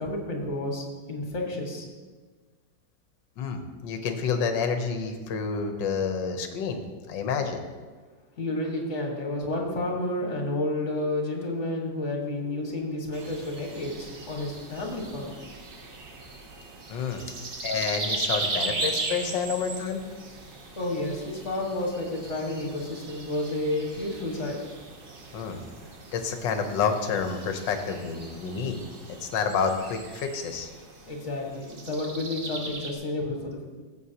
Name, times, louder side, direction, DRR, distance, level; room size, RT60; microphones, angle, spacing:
voice 1, 0.0-1.9 8.4-15.3 20.8-24.6 31.1-33.6, left 1 dB, 40° left, 0 dB, 1.9 m, -31 dB
voice 2, 3.4-6.8 7.1-7.7 16.9-17.2 17.6-20.0 25.3-25.6 26.1-28.8 29.2-30.7, left 6 dB, 75° left, 6 dB, 1.6 m, -29 dB
sound 1, 13.1-32.9, right 2 dB, 40° right, 0.8 m, -38 dB
14.5 x 7.6 x 2.9 m, 1.4 s
omnidirectional pair, 2.1 m